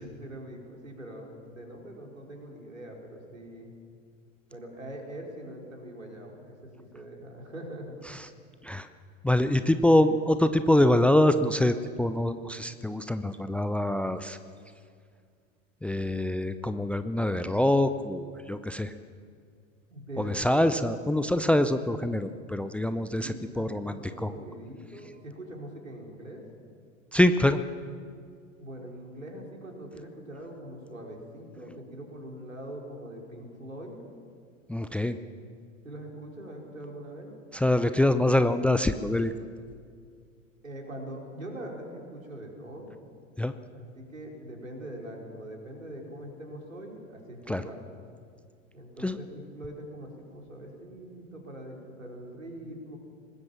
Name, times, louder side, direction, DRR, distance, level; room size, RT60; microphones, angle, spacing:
voice 1, 0.0-3.7 4.5-8.0 19.9-20.8 23.2-26.4 28.6-34.0 35.8-37.3 40.6-42.9 43.7-47.9 48.7-53.0, right 1 dB, 85° right, 0 dB, 5.0 m, -42 dB
voice 2, 9.2-14.4 15.8-18.9 20.2-24.3 27.1-27.6 34.7-35.2 37.5-39.3 43.4-43.5 47.5-47.6 49.0-49.2, left 1 dB, 5° left, 11 dB, 0.6 m, -25 dB
24.5 x 20.0 x 7.4 m, 2.2 s
figure-of-eight pair, 90°, 39 cm